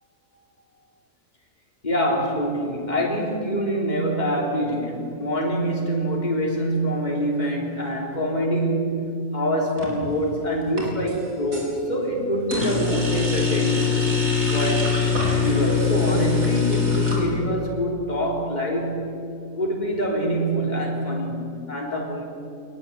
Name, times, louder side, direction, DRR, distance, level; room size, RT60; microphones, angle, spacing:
voice 1, 1.8-13.9 14.5-14.9 15.4-19.1 19.5-22.2, right 1 dB, 30° left, -1 dB, 3.6 m, -25 dB
sound 1, 9.8-10.2 10.6-11.7 12.5-17.2, left 5 dB, 75° right, 4.6 m, -23 dB
21.5 x 21.0 x 8.6 m, 2.6 s
omnidirectional pair, 1.5 m